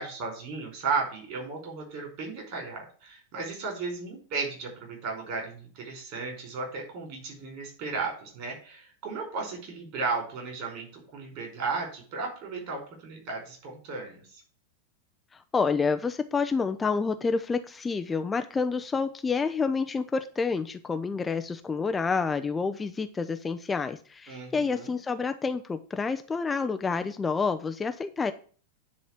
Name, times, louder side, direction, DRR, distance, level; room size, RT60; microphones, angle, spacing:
voice 1, 0.0-14.4 24.3-24.9, right 4 dB, 45° right, 1 dB, 5.0 m, -35 dB
voice 2, 15.5-28.3, left 4 dB, 15° left, 8 dB, 0.6 m, -28 dB
10.0 x 4.2 x 7.4 m, 0.42 s
figure-of-eight pair, 90°, 0 cm